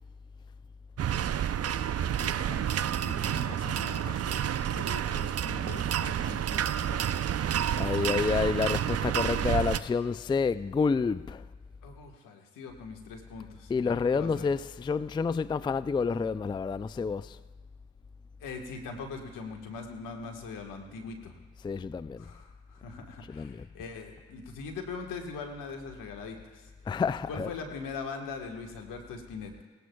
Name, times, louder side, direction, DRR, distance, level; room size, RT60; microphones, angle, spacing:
sound 1, 1.0-9.8, right 10 dB, 50° right, 0.6 m, -29 dB
voice 1, 2.2-7.1 11.8-14.5 18.4-21.3 22.2-26.7 27.3-29.6, left 4 dB, 80° left, 1.5 m, -42 dB
voice 2, 7.4-11.5 13.7-17.4 21.6-22.3 23.3-23.7 26.9-27.6, left 5 dB, 15° left, 0.3 m, -29 dB
18.5 x 15.5 x 2.3 m
hypercardioid pair, 40°, 31 cm